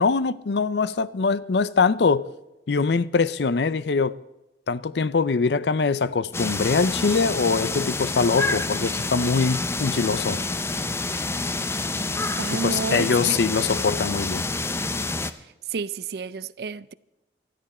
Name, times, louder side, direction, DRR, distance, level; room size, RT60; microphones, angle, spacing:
voice 1, 0.0-2.3 2.7-4.2 4.7-10.4 12.6-14.4, left 4 dB, 70° left, 0.5 m, -23 dB
sound 1, 6.3-15.3, left 3 dB, 15° left, 0.5 m, -28 dB
voice 2, 12.4-13.4 15.7-16.9, right 4 dB, 60° right, 0.4 m, -30 dB
20.0 x 13.5 x 4.3 m
head